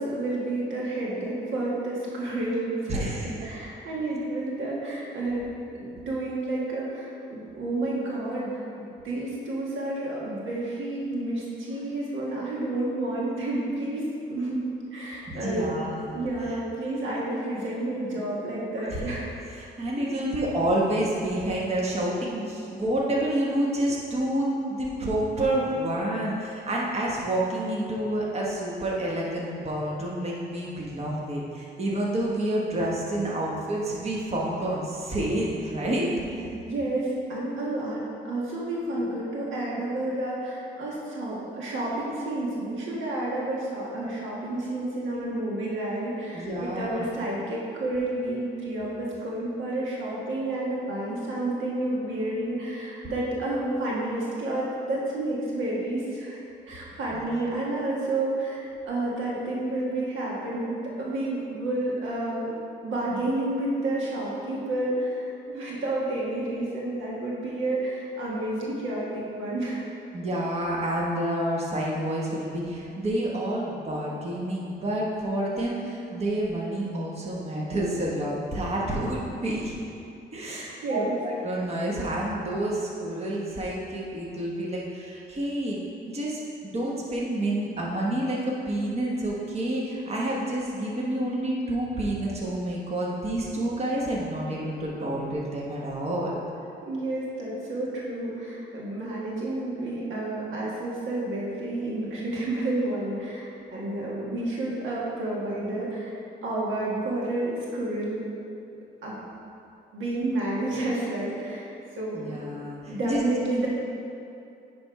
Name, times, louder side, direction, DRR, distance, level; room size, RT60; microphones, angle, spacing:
voice 1, 0.0-14.6 14.9-15.7 16.1-19.3 36.3-56.4 56.7-62.5 62.8-69.8 80.4-81.2 96.8-108.2 109.0-109.2 109.9-111.7 111.9-112.3 112.9-113.7, right 2 dB, 80° right, -5 dB, 1.6 m, -30 dB
voice 2, 2.9-3.6 15.3-16.1 16.5-16.6 18.8-19.0 19.5-36.5 46.3-47.1 57.1-57.3 70.1-79.7 80.3-85.8 86.0-96.4 112.1-113.2 113.5-113.7, right 1 dB, 30° right, -4 dB, 1.3 m, -29 dB
9.6 x 3.5 x 4.7 m, 2.6 s
cardioid pair, 90°, 20 cm